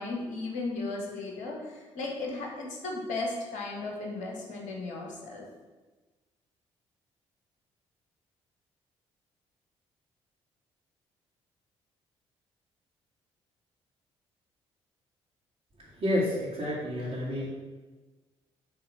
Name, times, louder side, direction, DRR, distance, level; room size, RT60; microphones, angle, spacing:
voice 1, 0.0-5.4, left 3 dB, 60° left, 0 dB, 1.4 m, -35 dB
voice 2, 16.0-17.5, left 1 dB, 45° right, -8 dB, 2.0 m, -29 dB
7.3 x 3.4 x 5.6 m, 1.3 s
figure-of-eight pair, 45°, 15 cm